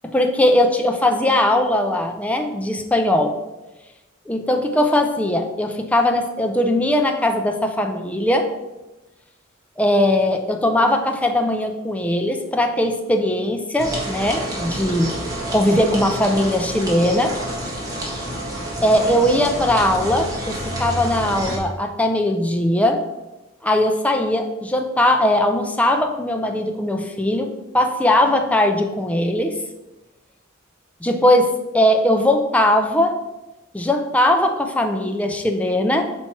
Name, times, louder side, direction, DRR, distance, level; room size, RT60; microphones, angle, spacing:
voice 1, 0.0-3.3 4.3-8.5 9.8-15.2 15.5-17.3 18.8-23.0 23.6-27.5 27.7-29.5 31.0-31.5 31.7-33.1 33.7-36.1, left 1 dB, 5° left, 3 dB, 0.5 m, -19 dB
sound 1, 13.8-21.6, right 1 dB, 20° right, 1.5 m, -28 dB
5.8 x 4.4 x 4.5 m, 1.0 s
head